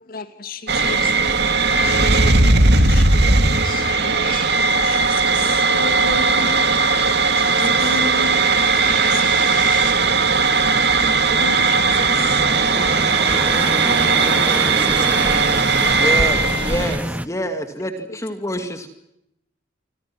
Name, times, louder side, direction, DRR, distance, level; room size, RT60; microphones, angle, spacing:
voice 1, 0.1-1.3 1.8-3.3 3.6-5.0 5.3-5.6 7.4-7.5 7.8-8.0 8.9-9.2 11.0-12.4 13.8-16.7, left 4 dB, 50° left, 9 dB, 2.6 m, -35 dB
sound 1, 0.7-17.0, right 3 dB, 60° right, 2.4 m, -17 dB
voice 2, 5.7-6.6 7.5-9.5 11.4-13.2, left 1 dB, 70° left, 10 dB, 4.5 m, -33 dB
sound 2, 6.3-9.9, right 7 dB, 45° right, 3.6 m, -37 dB
sound 3, 8.9-17.3, right 1 dB, 10° right, 1.0 m, -29 dB
voice 3, 15.9-18.9, equal, 15° left, 7 dB, 2.3 m, -27 dB
28.5 x 26.0 x 6.1 m, 0.82 s
head